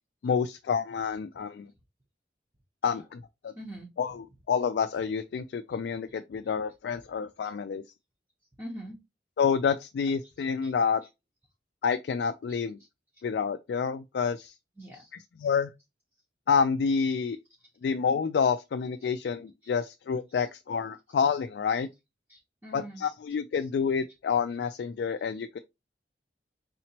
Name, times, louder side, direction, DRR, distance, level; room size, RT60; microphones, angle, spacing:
voice 1, 0.2-1.7 2.8-3.5 4.0-7.8 9.4-11.0 11.8-12.8 13.2-14.6 15.1-15.7 16.5-17.4 17.8-21.9 22.7-25.6, left 6 dB, 75° left, 0.3 m, -28 dB
voice 2, 3.6-3.9 8.6-9.0 10.6-10.7 14.8-15.1 22.3-23.0 23.5-23.6, equal, 15° right, 0.8 m, -43 dB
4.0 x 2.9 x 2.8 m
head